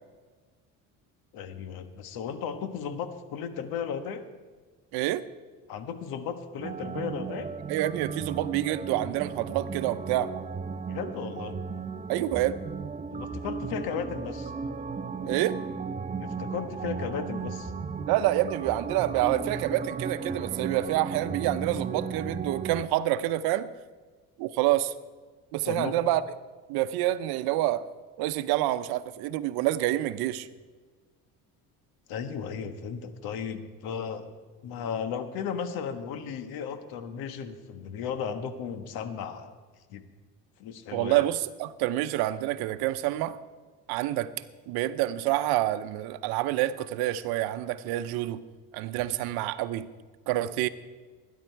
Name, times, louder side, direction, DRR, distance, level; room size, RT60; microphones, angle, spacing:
voice 1, 1.3-4.3 5.7-7.6 10.9-11.5 13.1-14.5 16.2-17.7 25.6-26.0 32.1-34.3 34.6-39.5 39.9-40.1 40.6-41.2, left 7 dB, 75° left, 1.5 m, -35 dB
voice 2, 4.9-5.2 7.7-10.3 12.1-12.6 15.3-15.6 18.1-23.7 24.4-24.9 25.5-26.2 26.7-27.8 28.2-30.5 40.9-43.4 43.9-44.3 44.7-48.4 48.7-49.9 50.3-50.7, right 14 dB, 80° right, 0.8 m, -27 dB
sound 1, 6.6-22.8, right 5 dB, 20° right, 0.7 m, -35 dB
20.5 x 10.5 x 4.6 m
supercardioid pair, 90°, 37 cm